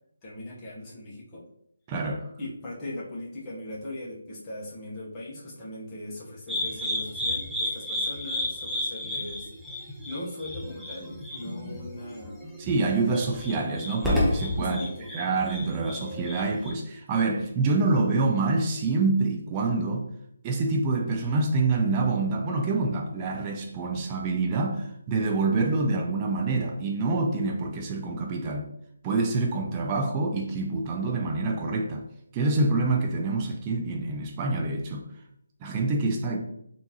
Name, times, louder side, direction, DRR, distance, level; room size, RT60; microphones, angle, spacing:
voice 1, 0.2-1.4 2.4-9.5 10.0-12.3 14.6-15.1, left 1 dB, 20° left, -6 dB, 1.0 m, -39 dB
voice 2, 1.9-2.3 12.6-14.8 15.1-20.1 20.4-28.7 29.0-32.0 32.3-35.1 35.6-36.4, right 3 dB, 20° right, 2 dB, 0.4 m, -26 dB
sound 1, 6.5-16.7, left 1 dB, 5° right, 0.8 m, -31 dB
3.5 x 2.6 x 2.9 m, 0.74 s
figure-of-eight pair, 150°, 0 cm